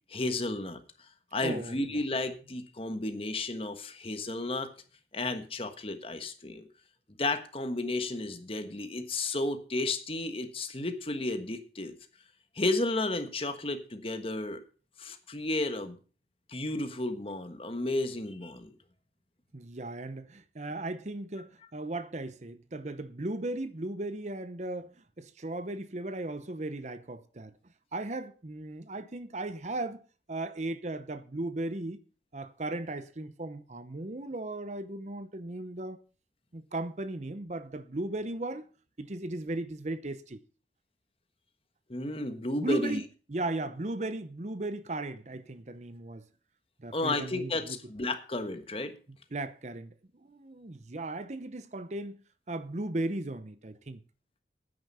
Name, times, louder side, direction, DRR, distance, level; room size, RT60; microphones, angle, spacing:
voice 1, 0.1-0.8 1.3-4.7 5.1-6.7 7.2-11.9 12.6-14.6 15.0-16.0 16.5-18.7 41.9-43.0 46.9-48.9, left 2 dB, 30° left, 1.3 m, -32 dB
voice 2, 1.4-2.0 19.5-27.6 27.9-30.0 30.3-32.0 32.3-36.0 36.5-38.7 39.0-40.4 42.6-46.3 46.8-47.8 49.3-49.9 50.2-52.2 52.5-54.0, right 2 dB, 40° right, 0.8 m, -36 dB
10.5 x 9.7 x 5.5 m
head